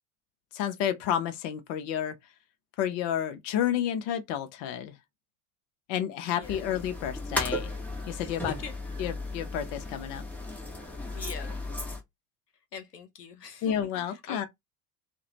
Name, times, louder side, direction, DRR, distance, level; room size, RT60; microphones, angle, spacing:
voice 1, 0.5-2.2 2.8-4.9 5.9-7.7 8.1-8.5 9.0-10.2 13.6-14.5, left 10 dB, 35° left, 0.5 m, -30 dB
sound 1, 6.4-12.0, left 2 dB, 5° left, 0.8 m, -35 dB
voice 2, 11.1-11.5 12.7-13.7 14.3-14.5, left 7 dB, 80° left, 0.7 m, -42 dB
2.3 x 2.1 x 2.8 m
figure-of-eight pair, 75°, 47 cm